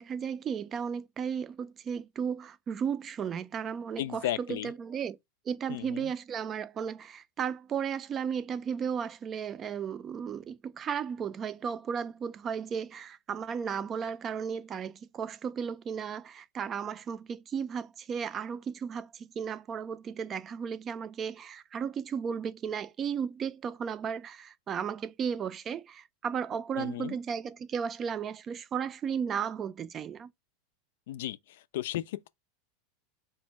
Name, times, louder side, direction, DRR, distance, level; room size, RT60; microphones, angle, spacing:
voice 1, 0.0-5.2 5.5-30.3, right 7 dB, 35° right, 0.4 m, -34 dB
voice 2, 4.0-4.7 5.7-6.1 26.7-27.2 31.1-32.3, left 13 dB, 70° left, 0.3 m, -35 dB
4.2 x 2.1 x 4.5 m
hypercardioid pair, 95°, 0 cm